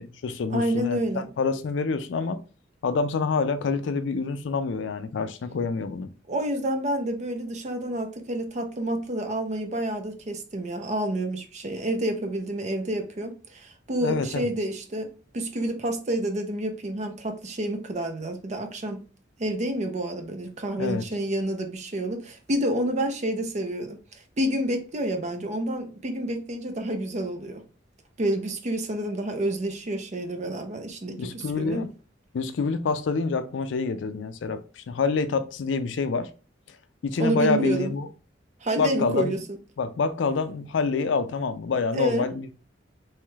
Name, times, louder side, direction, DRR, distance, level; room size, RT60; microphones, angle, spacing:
voice 1, 0.0-2.4 2.8-6.1 14.0-14.5 20.8-21.0 31.2-31.9 32.3-36.3 37.0-38.1 38.8-39.3 39.8-42.5, left 4 dB, 70° left, 0.4 m, -27 dB
voice 2, 0.5-1.3 6.3-19.0 19.4-24.0 24.4-27.6 28.2-31.9 37.2-38.0 38.6-39.4 41.9-42.3, right 1 dB, 40° right, 0.5 m, -29 dB
3.1 x 2.3 x 3.1 m
head